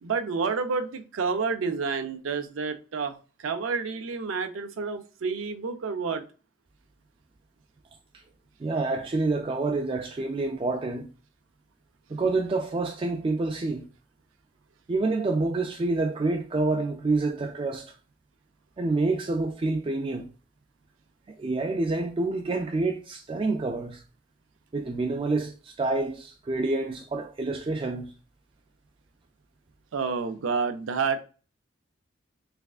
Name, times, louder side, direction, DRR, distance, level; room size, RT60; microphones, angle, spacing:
voice 1, 0.0-6.2 29.9-31.2, right 5 dB, 90° right, 0.5 m, -29 dB
voice 2, 8.6-11.1 12.1-13.8 14.9-17.9 18.8-20.3 21.3-24.0 24.7-28.1, right 3 dB, 25° right, 0.3 m, -27 dB
3.4 x 3.2 x 2.4 m
head